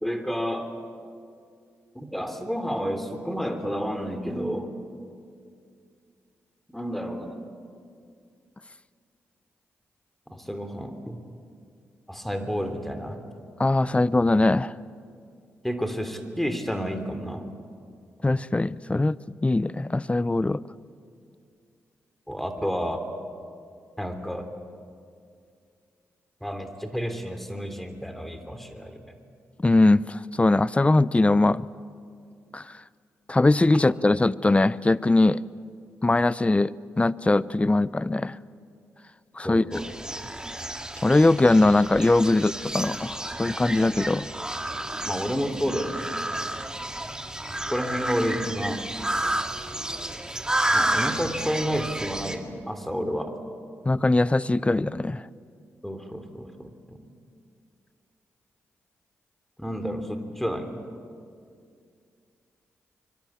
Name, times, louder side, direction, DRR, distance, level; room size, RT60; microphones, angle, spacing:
voice 1, 0.0-0.8 1.9-4.7 6.7-7.5 10.3-11.2 12.1-13.2 15.6-17.4 22.3-23.0 24.0-24.5 26.4-29.1 39.4-39.8 45.0-46.1 47.7-48.8 50.7-53.3 55.8-57.0 59.6-60.8, equal, 5° left, 7 dB, 3.2 m, -30 dB
voice 2, 13.6-14.7 18.2-20.6 29.6-31.7 32.5-32.8 33.3-35.4 36.0-38.4 39.3-39.6 41.0-44.3 53.8-55.3, left 2 dB, 20° left, 19 dB, 0.7 m, -21 dB
sound 1, 39.7-52.4, right 1 dB, 10° right, 2.3 m, -31 dB
24.5 x 22.5 x 8.7 m, 2.3 s
supercardioid pair, 50°, 6 cm